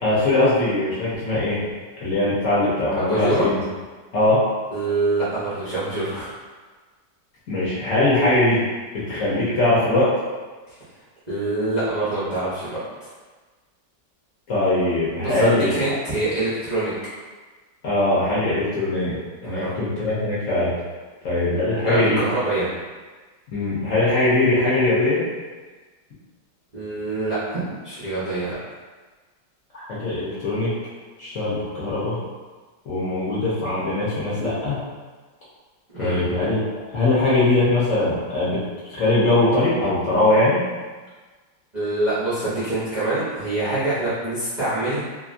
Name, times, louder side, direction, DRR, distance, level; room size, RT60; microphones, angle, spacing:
voice 1, 0.0-1.6 2.0-3.6 4.1-4.5 7.5-8.6 8.9-10.1 14.5-15.8 17.8-19.2 19.4-20.7 21.2-22.2 23.5-25.2 29.7-30.7 31.2-32.2 32.9-34.8 36.0-36.6 36.9-38.6 38.9-40.6, left 2 dB, 60° left, -9 dB, 0.9 m, -21 dB
voice 2, 3.0-3.5 4.7-6.3 10.7-10.8 11.3-13.1 15.2-16.9 19.6-19.7 21.9-22.8 26.7-28.5 35.9-36.2 41.7-45.0, right 2 dB, 65° right, -12 dB, 0.4 m, -25 dB
2.8 x 2.5 x 2.5 m, 1.4 s
omnidirectional pair, 1.9 m